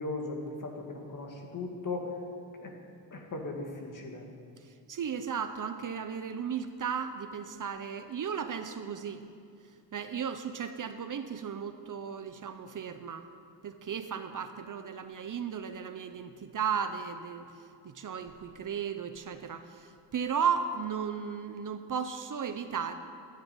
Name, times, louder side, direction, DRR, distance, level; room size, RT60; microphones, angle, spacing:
voice 1, 0.0-2.1 2.6-2.7 3.1-4.3, left 3 dB, 45° left, 1 dB, 2.2 m, -37 dB
voice 2, 4.9-9.2 9.9-13.3 13.6-17.5 17.8-23.0, right 7 dB, 45° right, 9 dB, 0.8 m, -35 dB
14.5 x 9.8 x 9.0 m, 2.3 s
wide cardioid pair, 170°, 43 cm